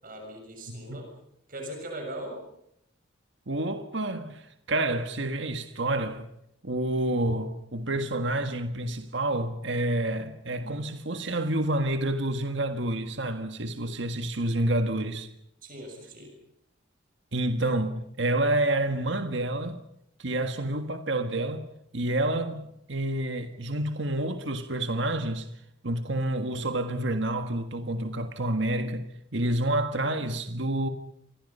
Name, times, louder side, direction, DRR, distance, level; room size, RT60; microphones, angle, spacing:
voice 1, 0.0-1.1 1.5-2.4 15.6-16.3, right 1 dB, 45° right, 6.9 m, -39 dB
voice 2, 0.7-1.0 3.5-6.3 6.6-15.3 17.3-19.8 20.2-21.7 21.9-25.5 25.8-29.1 29.3-30.9, right 1 dB, 65° right, 1.7 m, -28 dB
29.5 x 25.0 x 5.6 m
head